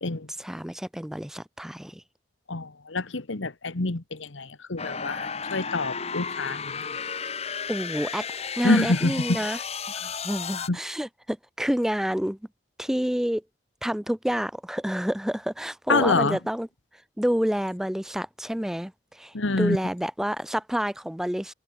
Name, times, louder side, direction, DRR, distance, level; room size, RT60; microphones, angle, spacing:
voice 1, 0.4-2.0 7.7-9.6 10.2-12.4 12.8-13.4 13.8-16.7 17.2-21.5, equal, ahead, 0.3 m, -28 dB
voice 2, 2.5-6.9 8.6-9.4 10.6-10.8 15.9-16.4 19.3-19.8, left 2 dB, 80° left, 1.4 m, -26 dB
sound 1, 4.8-10.7, left 6 dB, 35° left, 1.6 m, -33 dB
head